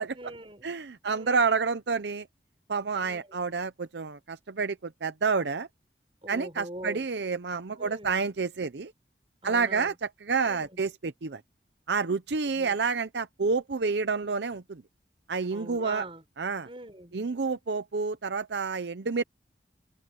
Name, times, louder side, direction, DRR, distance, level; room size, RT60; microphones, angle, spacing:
voice 1, 0.0-0.7 1.0-1.4 3.0-3.3 6.2-7.0 7.8-8.2 9.4-9.9 10.4-10.7 12.4-12.8 15.5-16.2 16.7-17.2, right 1 dB, 30° right, 5.9 m, -43 dB
voice 2, 0.6-2.3 2.7-5.7 6.3-8.9 9.4-11.4 11.9-14.8 15.3-16.1 16.4-16.7 17.1-19.2, right 4 dB, 80° right, 0.7 m, -29 dB
open air
head